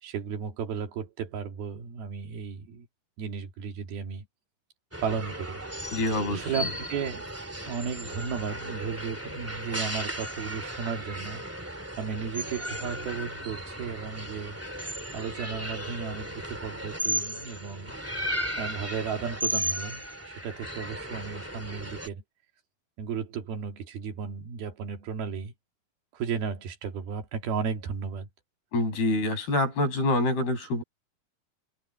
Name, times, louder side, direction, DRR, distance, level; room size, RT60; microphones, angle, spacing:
voice 1, 0.0-2.9 3.2-4.3 5.0-5.6 6.3-7.3 7.7-11.4 12.0-14.6 15.1-17.9 18.6-22.2 23.0-25.5 26.1-28.3, right 6 dB, 75° right, 4.3 m, -34 dB
sound 1, 4.9-22.1, equal, 5° right, 1.7 m, -35 dB
voice 2, 5.9-6.7 28.7-30.8, left 2 dB, 80° left, 8.7 m, -26 dB
omnidirectional pair, 4.4 m